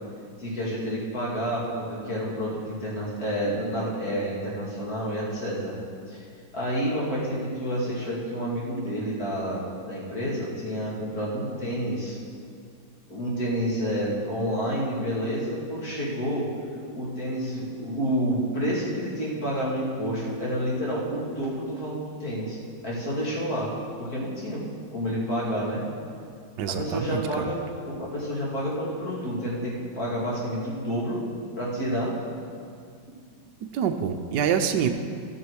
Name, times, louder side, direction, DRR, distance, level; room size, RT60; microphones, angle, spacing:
voice 1, 0.4-5.7 6.1-6.3 6.5-9.6 9.9-12.2 13.1-16.5 16.9-22.6 22.8-23.7 24.0-24.6 24.9-25.9 26.7-31.2 31.6-32.2, equal, 45° left, -6 dB, 2.9 m, -29 dB
voice 2, 26.6-27.5 33.7-34.9, right 7 dB, 70° right, 7 dB, 1.1 m, -26 dB
16.5 x 6.3 x 4.7 m, 2.2 s
omnidirectional pair, 2.2 m